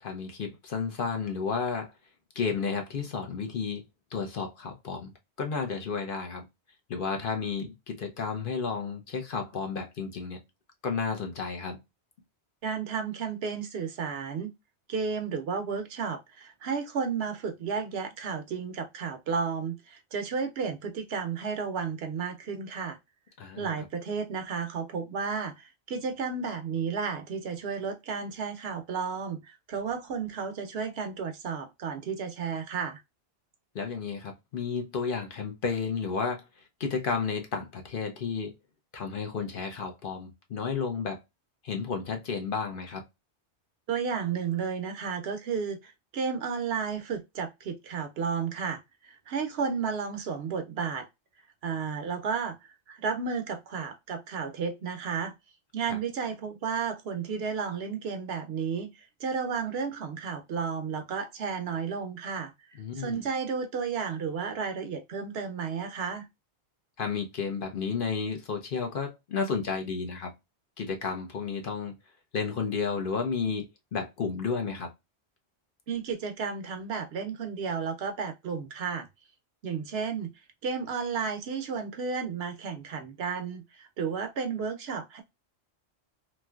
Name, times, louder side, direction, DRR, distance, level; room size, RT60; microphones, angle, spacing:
voice 1, 0.0-1.9 2.4-3.8 4.1-5.1 5.4-6.4 6.9-10.4 10.8-11.8 23.4-23.7 33.7-36.4 36.8-38.5 38.9-41.2 41.6-43.0 55.9-56.0 62.8-63.2 67.0-70.3 70.8-71.9 72.3-74.9, left 5 dB, 55° left, 0.8 m, -32 dB
voice 2, 12.6-14.5 14.9-23.0 23.6-33.0 43.9-51.1 51.6-55.3 55.7-66.3 75.9-79.1 79.6-80.3 80.6-85.2, right 6 dB, 70° right, 0.8 m, -33 dB
3.1 x 2.7 x 2.2 m
omnidirectional pair, 1.1 m